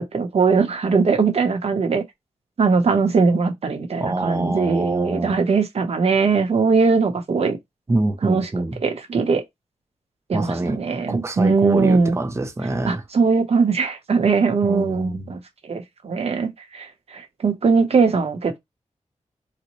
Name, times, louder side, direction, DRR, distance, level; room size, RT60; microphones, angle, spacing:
voice 1, 0.1-2.0 2.6-7.6 8.2-8.5 8.8-9.4 10.3-12.2 12.9-18.6, right 4 dB, 55° right, 0.9 m, -20 dB
voice 2, 4.0-5.4 7.9-8.8 10.3-10.8 11.1-13.0 14.6-15.3, right 2 dB, 20° right, 0.6 m, -25 dB
4.0 x 2.2 x 3.0 m
wide cardioid pair, 130°, 12 cm